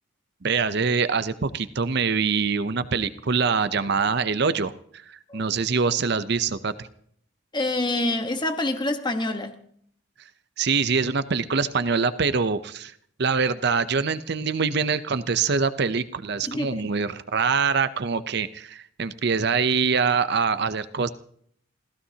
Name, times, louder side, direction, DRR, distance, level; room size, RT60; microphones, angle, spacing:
voice 1, 0.4-6.9 10.6-12.9 13.2-21.1, right 5 dB, 55° right, 0.7 m, -24 dB
voice 2, 7.5-9.5 16.4-16.9, left 2 dB, 25° left, 1.3 m, -26 dB
28.5 x 15.5 x 2.9 m
head